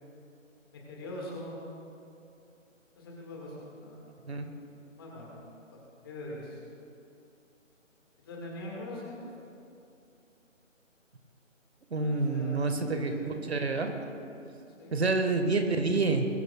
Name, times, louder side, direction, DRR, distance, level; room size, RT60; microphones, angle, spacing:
voice 1, 0.7-1.7 2.9-4.0 5.0-5.3 5.7-5.8 6.0-6.6 8.2-9.3 12.0-13.4 14.8-14.9, left 1 dB, 20° left, -3 dB, 1.6 m, -42 dB
voice 2, 11.9-13.1 13.5-14.1 14.9-16.3, right 3 dB, 55° right, 6 dB, 1.3 m, -28 dB
21.0 x 14.5 x 2.2 m, 2.7 s
figure-of-eight pair, 160°, 39 cm